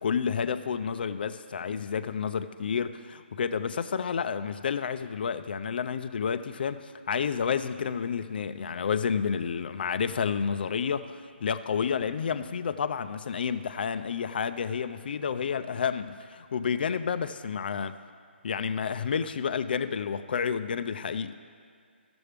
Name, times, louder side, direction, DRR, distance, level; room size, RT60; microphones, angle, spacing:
voice 1, 0.0-18.0 18.4-21.3, left 6 dB, 55° left, 11 dB, 0.4 m, -30 dB
14.0 x 6.9 x 3.3 m, 2.2 s
figure-of-eight pair, 150°, 6 cm